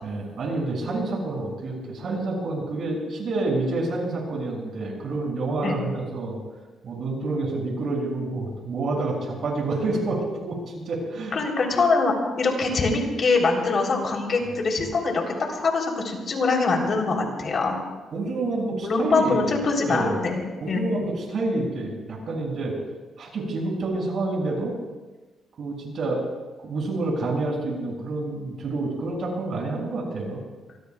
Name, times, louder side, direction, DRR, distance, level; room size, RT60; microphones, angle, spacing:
voice 1, 0.0-6.4 6.8-11.4 14.4-14.6 18.1-19.5 19.9-20.2 20.6-22.7 23.2-24.7 25.6-26.2 26.6-30.4, right 2 dB, 60° right, -1 dB, 7.0 m, -28 dB
voice 2, 11.3-15.2 15.5-17.8 18.8-20.9, left 3 dB, 50° left, 1 dB, 3.8 m, -23 dB
24.0 x 21.5 x 2.4 m, 1.2 s
cardioid pair, 90°, 0 cm